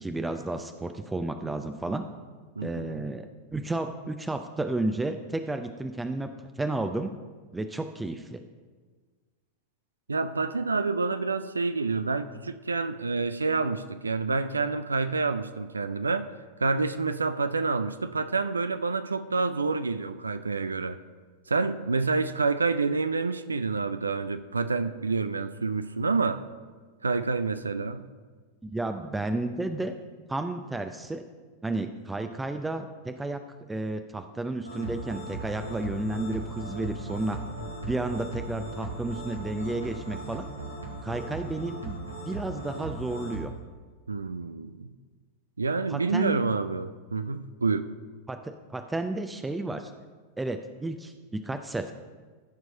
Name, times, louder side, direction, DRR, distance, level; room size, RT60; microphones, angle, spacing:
voice 1, 0.0-2.0 2.6-6.3 6.6-7.1 7.5-8.4 28.6-29.9 30.3-31.3 31.6-33.4 33.7-37.4 37.9-40.4 41.0-43.5 45.9-46.4 48.3-49.9 50.4-51.1 51.4-51.9, right 2 dB, 10° right, 7 dB, 0.5 m, -32 dB
voice 2, 2.6-3.0 10.1-16.3 16.6-21.0 21.5-26.4 27.0-28.1 44.1-44.9 45.6-47.9, right 4 dB, 75° right, 12 dB, 0.4 m, -28 dB
sound 1, 34.6-43.4, right 2 dB, 90° left, 1.8 m, -37 dB
14.0 x 4.7 x 5.2 m, 1.5 s
figure-of-eight pair, 90°, 0 cm